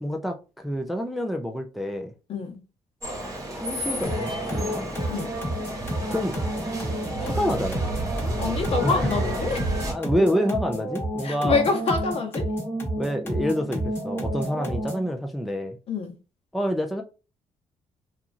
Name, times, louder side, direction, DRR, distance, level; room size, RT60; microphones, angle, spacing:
voice 1, 0.0-2.1 3.5-4.9 6.1-6.3 7.2-7.8 8.8-9.1 9.8-11.6 13.0-15.8 16.5-17.0, equal, ahead, 0.3 m, -27 dB
sound 1, 3.0-9.9, right 1 dB, 30° right, 1.0 m, -31 dB
sound 2, 4.0-15.1, equal, 20° left, 1.0 m, -30 dB
voice 2, 8.4-9.7 11.2-12.5 15.9-16.1, left 4 dB, 60° left, 0.9 m, -26 dB
2.9 x 2.4 x 2.5 m
cardioid pair, 130°, 11 cm